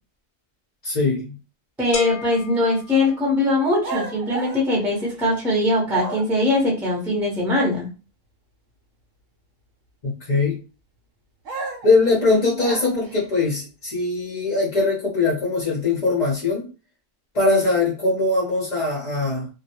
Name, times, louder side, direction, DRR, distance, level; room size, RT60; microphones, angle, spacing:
voice 1, 0.8-1.4 10.0-10.6 11.8-16.7 17.3-19.5, left 3 dB, 40° left, 0.7 m, -21 dB
voice 2, 1.8-7.9, left 1 dB, ahead, 0.6 m, -21 dB
sound 1, 1.9-3.8, left 6 dB, 80° left, 1.0 m, -33 dB
sound 2, 3.8-5.4 5.9-6.5 11.5-13.3, right 3 dB, 70° right, 0.9 m, -33 dB
2.3 x 2.1 x 2.8 m
omnidirectional pair, 1.4 m